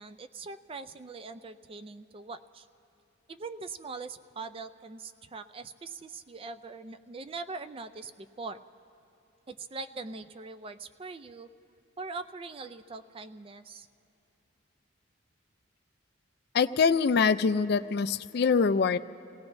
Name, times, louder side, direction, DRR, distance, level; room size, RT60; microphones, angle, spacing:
voice 1, 0.0-2.7 3.3-8.6 9.5-11.5 12.0-13.9, right 4 dB, 25° right, 11 dB, 0.3 m, -42 dB
voice 2, 16.5-19.0, left 5 dB, 50° left, 12 dB, 0.4 m, -24 dB
29.5 x 17.5 x 2.6 m, 2.9 s
head